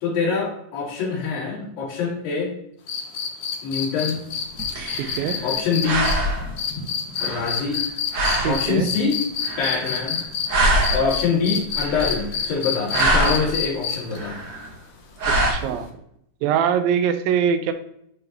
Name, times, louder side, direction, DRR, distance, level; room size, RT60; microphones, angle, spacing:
voice 1, 0.0-2.6 3.6-4.3 5.4-6.1 7.2-7.8 8.5-9.2 9.6-10.3 10.9-14.4, left 5 dB, 90° left, -6 dB, 3.9 m, -25 dB
sound 1, 2.9-10.5 10.8-14.2 15.8-15.9, left 7 dB, 65° left, 2.1 m, -27 dB
sound 2, 4.3-5.6 5.8-6.6 7.2-7.8 8.1-8.7 9.4-10.2 10.5-11.2 11.7-12.4 12.7-13.5 14.1-14.7 15.2-15.5, right 1 dB, 50° right, 1.5 m, -24 dB
voice 2, 5.0-5.4 8.4-8.9 15.5-15.9 16.4-17.7, right 8 dB, 90° right, 9 dB, 2.5 m, -22 dB
11.0 x 3.9 x 2.9 m, 0.75 s
omnidirectional pair, 4.0 m